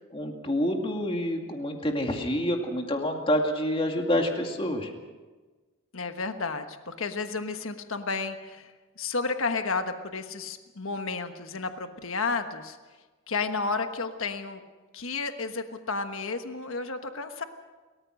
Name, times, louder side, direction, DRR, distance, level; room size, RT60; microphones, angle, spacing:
voice 1, 0.1-4.9, left 1 dB, 25° left, 3 dB, 2.2 m, -27 dB
voice 2, 5.9-12.8 13.3-14.6 14.9-17.4, left 4 dB, 70° left, 7 dB, 1.3 m, -32 dB
30.0 x 14.5 x 6.4 m, 1.3 s
head